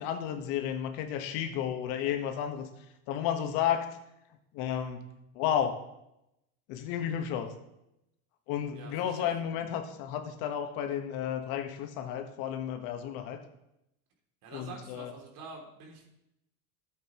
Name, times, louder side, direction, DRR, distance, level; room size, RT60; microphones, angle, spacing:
voice 1, 0.0-4.0 4.5-5.1 5.3-5.8 6.7-7.5 8.5-13.4 14.5-15.1, left 9 dB, 65° left, 6 dB, 1.4 m, -32 dB
voice 2, 8.7-9.5 14.4-16.1, right 4 dB, 55° right, 1 dB, 2.9 m, -47 dB
12.5 x 8.1 x 3.1 m, 0.85 s
supercardioid pair, 95°, 39 cm